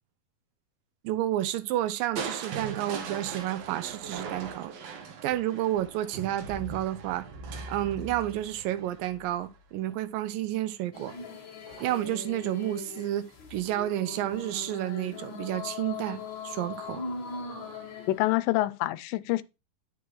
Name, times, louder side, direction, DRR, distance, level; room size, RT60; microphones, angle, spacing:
voice 1, 1.0-4.7 5.2-7.3 7.7-11.1 11.8-17.0, right 13 dB, 90° right, 2.4 m, -30 dB
Crushing, 2.2-10.1 11.7-12.2 12.7-12.8, right 5 dB, 60° right, 2.0 m, -40 dB
sound 1, 10.9-18.3, left 4 dB, 45° left, 1.9 m, -40 dB
voice 2, 18.1-19.4, left 17 dB, 85° left, 2.2 m, -26 dB
10.0 x 5.8 x 3.1 m
omnidirectional pair, 3.9 m